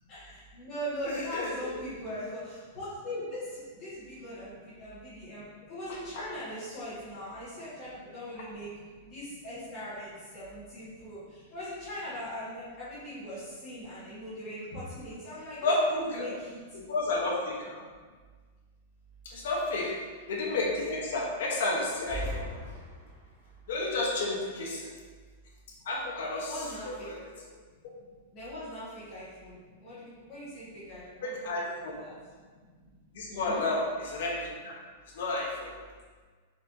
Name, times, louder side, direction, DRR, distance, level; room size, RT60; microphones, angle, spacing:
voice 1, 0.1-8.7 9.0-15.6 15.9-16.6 19.7-19.8 24.5-24.7 26.5-27.1 28.3-32.1 33.3-33.6, equal, 25° left, -11 dB, 1.5 m, -40 dB
voice 2, 1.0-1.7 5.9-6.2 15.6-16.3 16.9-17.8 19.2-19.9 20.3-22.5 23.7-24.9 25.9-27.3 27.8-27.9 31.2-32.0 33.1-34.7 35.1-35.7, left 2 dB, 65° left, -2 dB, 0.9 m, -31 dB
sound 1, 21.9-23.5, equal, 15° right, 0.8 m, -39 dB
4.3 x 3.4 x 2.6 m, 1.5 s
supercardioid pair, 175°, 0 cm